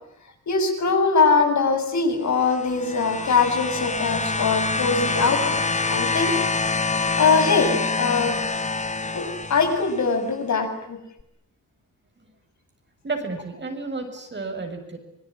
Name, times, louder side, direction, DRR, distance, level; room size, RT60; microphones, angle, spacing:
voice 1, 0.5-5.4 5.9-6.3 7.0-8.4 9.1-11.0, left 4 dB, 65° left, 4 dB, 7.6 m, -22 dB
sound 1, 2.4-10.1 11.2-11.3, left 3 dB, 25° left, 1.4 m, -26 dB
voice 2, 13.0-15.0, right 3 dB, 35° right, 5 dB, 7.4 m, -32 dB
27.0 x 20.5 x 10.0 m, 0.82 s
cardioid pair, 90°, 31 cm